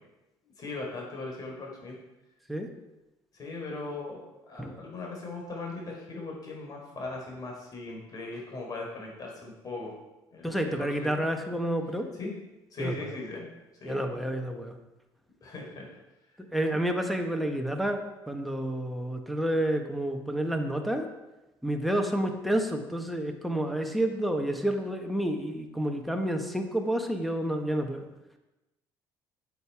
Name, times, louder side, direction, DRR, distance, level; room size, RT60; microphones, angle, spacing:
voice 1, 0.4-2.0 3.3-10.0 10.3-11.3 12.2-12.3 12.7-13.5 13.7-14.0 15.4-15.9, left 3 dB, 45° left, 0 dB, 4.1 m, -39 dB
voice 2, 10.4-12.1 12.8-13.1 13.8-14.7 16.4-21.1 21.6-28.0, right 1 dB, ahead, 3 dB, 1.5 m, -29 dB
9.4 x 8.2 x 4.9 m, 1.0 s
cardioid pair, 95°, 9 cm